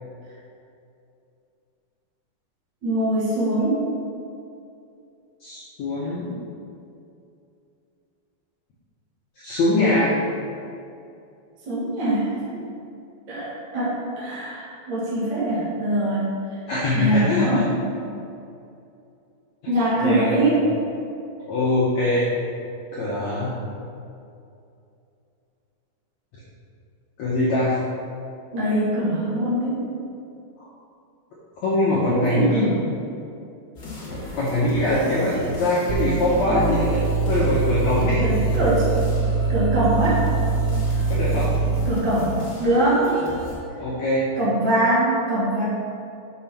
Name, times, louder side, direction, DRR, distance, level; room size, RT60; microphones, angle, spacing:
voice 1, 2.8-3.8 11.7-12.4 13.3-13.5 13.7-16.3 16.9-17.7 19.7-20.6 28.5-29.8 32.1-32.8 35.1-35.6 38.2-38.9 39.5-40.2 41.8-43.1 44.4-45.6, right 1 dB, 50° right, -8 dB, 1.4 m, -22 dB
voice 2, 5.4-6.4 9.4-10.2 16.7-17.6 20.0-20.4 21.4-22.3 22.9-23.6 27.2-27.7 31.6-32.7 34.1-38.2 41.1-41.5 43.8-44.3, left 1 dB, 70° left, -8 dB, 1.7 m, -23 dB
sound 1, 33.7-43.5, left 1 dB, 85° left, 0.8 m, -35 dB
sound 2, 35.9-42.1, right 4 dB, 80° right, 2.5 m, -23 dB
6.7 x 4.8 x 5.7 m, 2.6 s
omnidirectional pair, 4.5 m